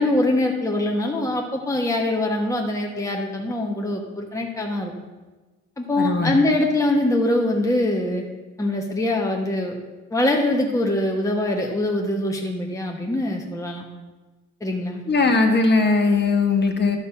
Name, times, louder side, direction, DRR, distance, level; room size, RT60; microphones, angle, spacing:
voice 1, 0.0-4.9 5.8-8.2 8.6-9.8 10.1-13.8 14.6-15.0, left 1 dB, 10° left, 0 dB, 1.1 m, -23 dB
voice 2, 6.0-6.3 15.1-17.0, left 3 dB, 35° left, 3 dB, 1.3 m, -19 dB
11.5 x 4.1 x 7.1 m, 1.2 s
cardioid pair, 90°, 30 cm